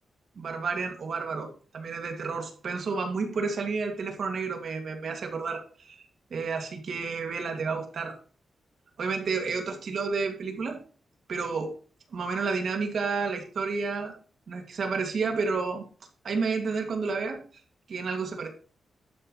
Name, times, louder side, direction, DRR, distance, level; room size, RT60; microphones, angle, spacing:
voice 1, 0.4-6.1 6.3-8.2 9.0-10.8 11.3-11.8 12.1-14.1 14.5-15.8 16.2-17.4 17.9-18.5, right 4 dB, 60° right, 4 dB, 2.5 m, -30 dB
12.0 x 9.6 x 3.3 m, 0.40 s
wide cardioid pair, 155°, 0 cm